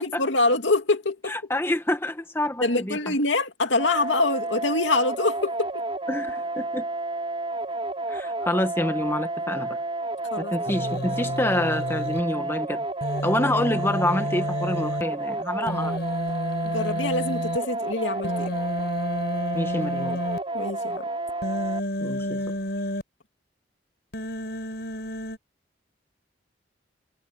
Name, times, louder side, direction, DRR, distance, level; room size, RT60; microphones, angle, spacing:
voice 1, 0.0-1.3 2.6-5.8 10.3-10.5 16.6-18.6 20.5-21.1, left 2 dB, 80° left, 2.4 m, -25 dB
voice 2, 1.3-3.1 6.1-6.8 8.1-9.8 10.4-12.9 13.2-16.0 19.5-20.2 22.0-22.5, left 1 dB, 15° left, 1.5 m, -27 dB
sound 1, 3.8-21.8, right 2 dB, 30° right, 4.4 m, -31 dB
Human voice, 10.7-12.2 13.0-15.0 15.7-17.6 18.2-20.4 21.4-23.0 24.1-25.4, equal, 60° left, 7.0 m, -30 dB
head